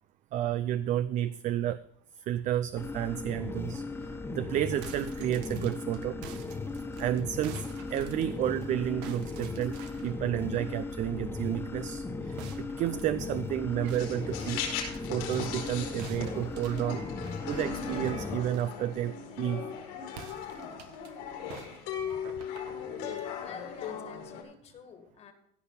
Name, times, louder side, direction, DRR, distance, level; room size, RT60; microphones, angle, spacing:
voice 1, 0.3-1.8 2.3-3.8 4.3-6.2 7.0-9.7 10.0-14.6 15.1-17.0 17.5-19.6, right 12 dB, 50° right, 14 dB, 0.5 m, -31 dB
sound 1, 2.8-18.4, left 3 dB, 15° left, 1.4 m, -37 dB
sound 2, 4.8-8.7 9.0-10.2 12.4-15.4 16.0-18.8 20.1-21.1 21.5-23.3, right 7 dB, 85° right, 1.4 m, -49 dB
sound 3, 14.0-24.4, left 7 dB, 90° left, 4.2 m, -38 dB
voice 2, 23.4-25.3, left 7 dB, 40° left, 8 dB, 1.9 m, -48 dB
16.0 x 5.9 x 5.7 m, 0.70 s
cardioid pair, 125°, 16 cm